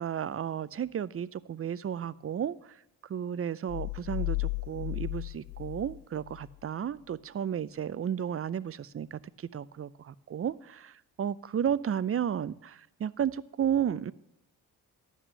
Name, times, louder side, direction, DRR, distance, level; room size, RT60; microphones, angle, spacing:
voice 1, 0.0-2.8 3.1-14.1, right 9 dB, 35° right, 18 dB, 0.5 m, -33 dB
sound 1, 3.7-6.6, left 28 dB, 50° left, 0.4 m, -35 dB
10.5 x 6.1 x 6.8 m, 0.82 s
supercardioid pair, 45°, 43 cm